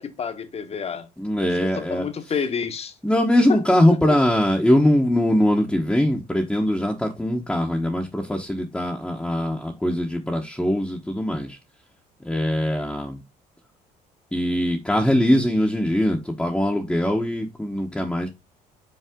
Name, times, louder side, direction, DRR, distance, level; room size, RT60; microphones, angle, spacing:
voice 1, 0.0-1.1 1.7-2.9 3.5-3.8, left 6 dB, 35° left, 1.2 m, -29 dB
voice 2, 1.2-2.1 3.0-11.6 12.2-13.2 14.3-18.3, left 1 dB, 5° left, 1.1 m, -21 dB
5.6 x 4.8 x 3.7 m
cardioid pair, 110°, 17 cm